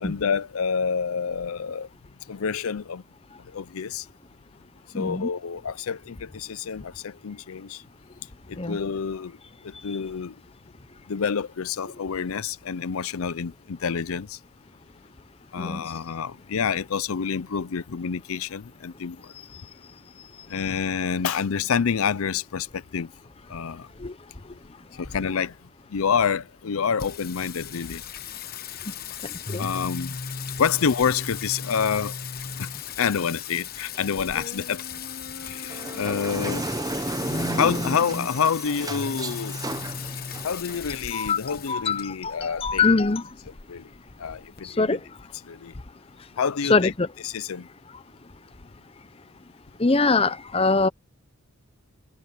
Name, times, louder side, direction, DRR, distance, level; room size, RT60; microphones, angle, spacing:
voice 1, 0.0-1.9 2.3-3.0 3.5-4.1 4.9-7.8 8.5-9.4 9.6-10.3 11.1-14.4 15.5-19.3 20.5-23.1 23.5-23.9 24.9-25.5 25.9-28.0 29.6-30.2 30.6-32.2 32.6-32.7 33.0-34.8 35.5-36.7 37.6-39.6 40.4-42.8 43.7-43.9 44.2-45.0 45.5-45.7 46.4-46.9 47.2-47.7, left 6 dB, 75° left, 0.5 m, -28 dB
voice 2, 4.9-5.3 8.6-8.8 15.6-15.8 24.0-24.1 29.5-29.7 41.1-43.3 44.6-45.0 46.7-47.1 49.8-50.9, left 3 dB, 25° left, 0.8 m, -23 dB
Singing, 27.0-44.6, left 5 dB, 45° left, 1.1 m, -36 dB
sound 1, 35.7-41.0, right 2 dB, 15° right, 0.8 m, -33 dB
head